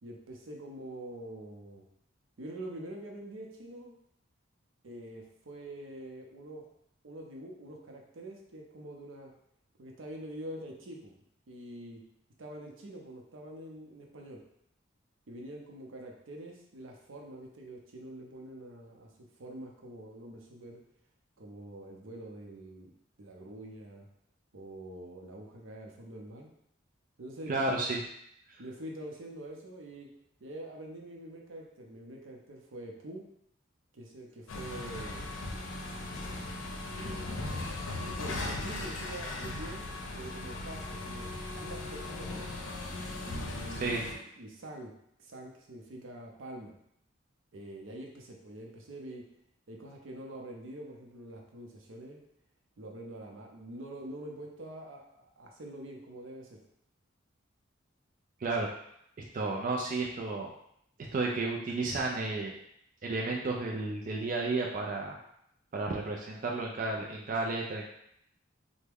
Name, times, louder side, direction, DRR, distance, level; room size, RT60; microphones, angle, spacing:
voice 1, 0.0-1.9 2.4-4.0 4.8-6.7 7.0-9.3 9.8-11.2 11.5-12.0 12.4-14.4 15.3-20.8 21.4-22.9 23.2-24.1 24.5-26.5 27.2-27.7 28.6-30.1 30.4-33.3 33.9-35.3 37.0-37.4 37.8-39.9 40.1-42.5 43.3-44.9 45.2-46.7 47.5-49.3 49.7-52.2 52.8-56.6, right 1 dB, 85° right, 0 dB, 0.6 m, -45 dB
voice 2, 27.5-28.0 43.8-44.0 58.4-58.7 59.2-60.5 61.0-62.5 63.0-65.2 65.7-67.9, right 3 dB, 40° right, -1 dB, 0.4 m, -32 dB
sound 1, 34.5-44.1, left 2 dB, 90° left, 0.5 m, -38 dB
3.3 x 2.1 x 3.4 m, 0.73 s
head